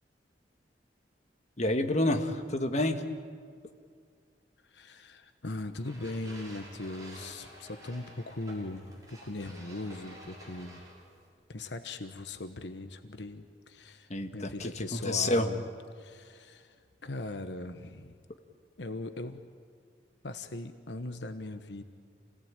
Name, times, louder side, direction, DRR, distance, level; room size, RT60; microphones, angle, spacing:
voice 1, 1.6-3.0 14.1-15.5, left 1 dB, 40° left, 5 dB, 1.5 m, -29 dB
voice 2, 4.6-10.8 11.5-15.6 15.9-16.7 17.0-18.2 18.8-19.4 20.2-21.8, left 2 dB, 80° left, 8 dB, 1.1 m, -39 dB
sound 1, 5.8-11.3, right 1 dB, 20° right, 5.9 m, -50 dB
28.0 x 18.0 x 9.0 m, 2.1 s
head